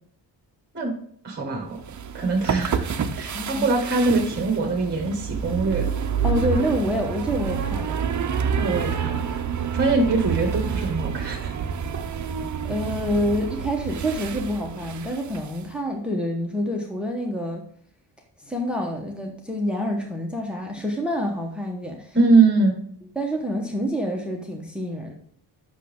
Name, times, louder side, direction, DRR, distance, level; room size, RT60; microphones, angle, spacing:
voice 1, 1.2-1.8 2.1-5.9 8.6-9.2 9.7-11.5 22.1-22.8, right 3 dB, 25° right, 1 dB, 1.4 m, -22 dB
sound 1, 1.8-15.6, right 7 dB, 40° right, 0.6 m, -28 dB
voice 2, 3.3-3.7 6.2-8.0 12.6-17.6 18.4-22.2 23.1-25.2, equal, ahead, 2 dB, 1.0 m, -27 dB
8.3 x 6.2 x 3.5 m, 0.62 s
wide cardioid pair, 160°, 43 cm